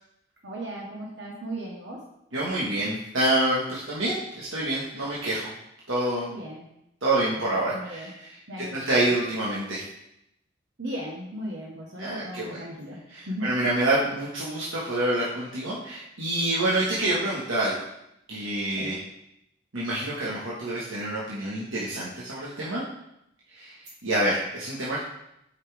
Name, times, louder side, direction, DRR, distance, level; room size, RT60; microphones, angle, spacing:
voice 1, 0.4-2.0 6.3-6.7 7.2-8.1 8.5-9.0 10.8-13.0 13.3-13.5 18.7-19.0, equal, 60° right, -3 dB, 1.2 m, -36 dB
voice 2, 2.3-5.5 5.9-6.3 7.0-9.9 12.0-12.6 13.1-17.7 18.3-19.0 19.7-22.8 23.5-23.8 24.0-25.0, right 1 dB, 80° right, -7 dB, 1.5 m, -27 dB
8.2 x 5.7 x 3.5 m, 0.80 s
head